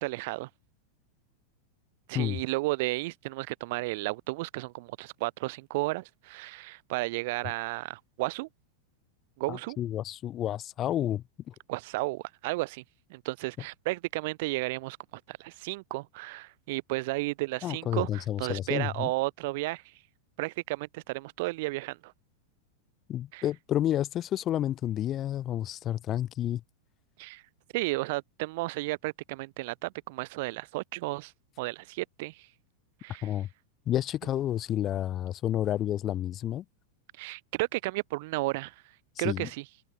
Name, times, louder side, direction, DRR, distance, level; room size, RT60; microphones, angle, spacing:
voice 1, 0.0-0.5 2.1-8.5 9.4-9.8 11.7-12.8 13.1-15.0 15.3-19.8 20.4-22.1 23.3-23.4 27.2-27.4 27.7-31.3 31.6-32.5 33.0-33.3 37.2-38.7 39.2-39.6, right 22 dB, 50° right, 0.7 m, -33 dB
voice 2, 9.5-11.5 17.6-19.1 23.1-26.6 33.2-33.5 33.9-36.6 39.2-39.5, left 12 dB, 30° left, 0.6 m, -30 dB
figure-of-eight pair, 90°, 0 cm